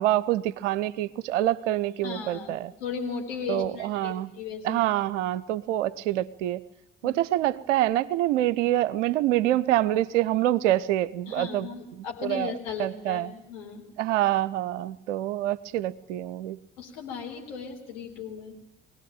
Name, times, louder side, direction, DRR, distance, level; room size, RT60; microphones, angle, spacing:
voice 1, 0.0-2.7 3.5-4.3 4.6-6.6 7.0-11.7 12.2-12.5 12.8-13.3 14.0-16.6, right 14 dB, 70° right, 18 dB, 0.7 m, -26 dB
voice 2, 2.0-4.8 7.0-7.2 11.3-13.8 16.8-18.6, left 6 dB, 70° left, 0 dB, 4.0 m, -36 dB
23.0 x 17.5 x 9.0 m, 0.90 s
figure-of-eight pair, 45°, 37 cm